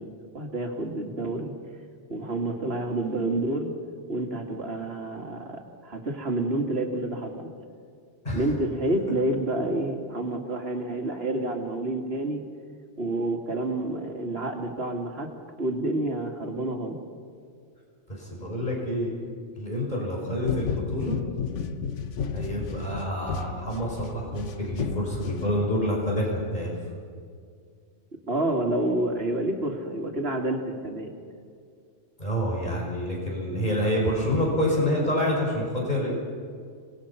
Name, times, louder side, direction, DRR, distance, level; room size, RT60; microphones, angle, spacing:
voice 1, 0.0-1.5 2.1-3.7 4.1-7.5 8.3-12.4 13.0-15.3 15.6-17.0 28.3-31.1, right 2 dB, 55° right, 3 dB, 2.6 m, -29 dB
voice 2, 18.1-19.1 19.6-21.2 22.3-26.7 32.2-36.1, equal, 35° left, -2 dB, 6.1 m, -27 dB
sound 1, 20.4-26.0, left 6 dB, 70° left, 1.3 m, -33 dB
25.0 x 20.5 x 5.8 m, 2.2 s
omnidirectional pair, 1.3 m